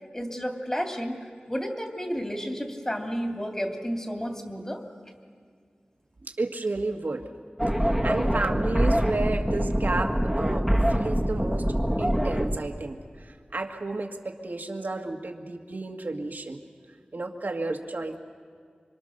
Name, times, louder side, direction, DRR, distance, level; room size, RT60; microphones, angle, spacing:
voice 1, 0.1-1.1 1.5-4.8, equal, 15° left, 2 dB, 2.9 m, -31 dB
voice 2, 6.2-7.3 7.8-11.6 12.0-16.6 17.1-18.2, right 2 dB, 70° right, 3 dB, 1.7 m, -32 dB
sound 1, 7.6-12.6, equal, ahead, 1.7 m, -24 dB
26.5 x 24.5 x 6.6 m, 2.2 s
wide cardioid pair, 60°, 3 cm